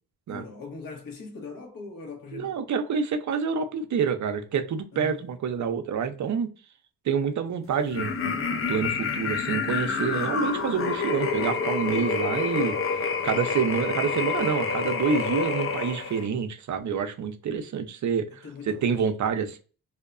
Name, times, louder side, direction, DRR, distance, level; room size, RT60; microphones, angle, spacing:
voice 1, 0.3-2.6 4.9-5.2 18.4-19.0, left 4 dB, 55° left, 1.1 m, -40 dB
voice 2, 2.3-6.5 7.0-8.4 8.7-12.7 13.2-19.6, right 6 dB, 45° right, 0.5 m, -27 dB
sound 1, 7.9-16.3, left 5 dB, 35° left, 0.4 m, -28 dB
2.7 x 2.1 x 2.3 m
cardioid pair, 90°, 39 cm